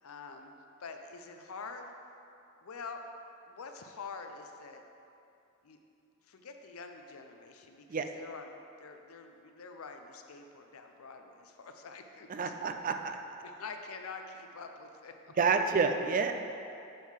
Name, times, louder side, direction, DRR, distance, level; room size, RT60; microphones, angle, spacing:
voice 1, 0.0-1.9 2.6-3.1 3.5-4.8 5.6-5.8 6.2-12.5 12.8-12.9 13.4-15.3, left 4 dB, 75° left, 5 dB, 0.6 m, -46 dB
voice 2, 12.3-13.2 15.4-16.3, right 5 dB, 40° right, 6 dB, 0.4 m, -28 dB
7.5 x 3.7 x 5.6 m, 2.7 s
head